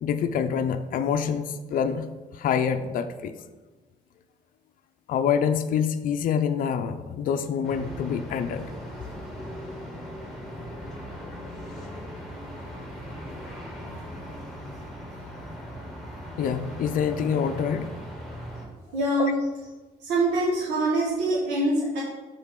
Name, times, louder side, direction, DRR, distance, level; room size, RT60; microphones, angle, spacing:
voice 1, 0.0-2.1 2.3-3.3 5.1-8.7 16.4-17.9 19.2-19.3, left 7 dB, 55° left, 8 dB, 0.5 m, -26 dB
sound 1, 7.6-18.7, equal, ahead, 2.1 m, -39 dB
voice 2, 18.9-19.4 20.0-22.0, right 1 dB, 85° right, -6 dB, 1.6 m, -24 dB
7.3 x 4.1 x 5.2 m, 1.2 s
cardioid pair, 110°, 17 cm